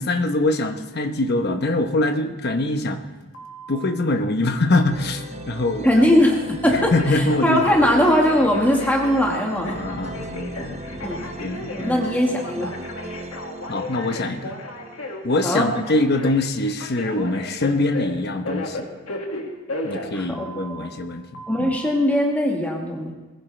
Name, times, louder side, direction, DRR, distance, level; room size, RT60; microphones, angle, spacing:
voice 1, 0.0-3.0 3.7-6.0 6.7-7.6 9.7-11.1 11.4-12.0 13.7-14.6 15.2-18.9 19.8-21.8, left 2 dB, 50° left, 6 dB, 1.0 m, -24 dB
Telephone, 3.3-3.9 6.7-20.9 21.3-21.9, left 1 dB, 90° left, 2.1 m, -34 dB
sound 1, 4.9-16.3, right 1 dB, 30° right, 0.8 m, -37 dB
voice 2, 5.8-9.8 11.0-11.2 11.7-12.7 15.4-15.7 20.1-20.5 20.8-20.9 21.5-23.1, left 1 dB, 10° left, -1 dB, 1.6 m, -20 dB
21.0 x 15.0 x 3.3 m, 1.2 s
head